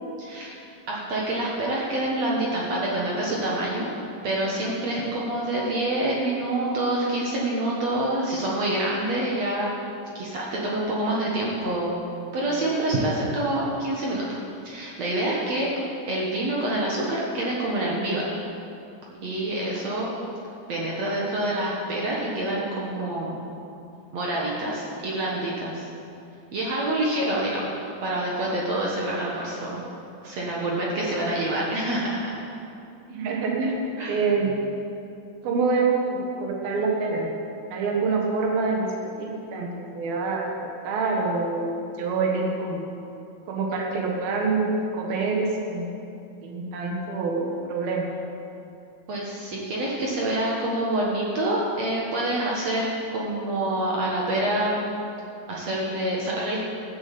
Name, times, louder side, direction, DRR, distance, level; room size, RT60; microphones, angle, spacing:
voice 1, 0.2-0.6 0.9-3.9 4.2-9.7 10.1-12.0 12.3-14.4 14.6-15.7 16.1-18.4 19.2-20.1 20.7-23.4 24.1-25.8 26.5-27.7 28.0-29.8 30.2-32.3 34.0-34.2 49.1-52.9 53.1-54.8 55.5-56.6, right 1 dB, 55° right, -4 dB, 2.4 m, -26 dB
voice 2, 33.1-33.8 34.1-34.6 35.4-37.3 37.7-38.9 39.2-41.7 42.0-42.8 43.5-45.9 46.4-48.1, right 4 dB, 85° right, -1 dB, 3.3 m, -26 dB
13.5 x 7.5 x 8.7 m, 2.7 s
omnidirectional pair, 4.1 m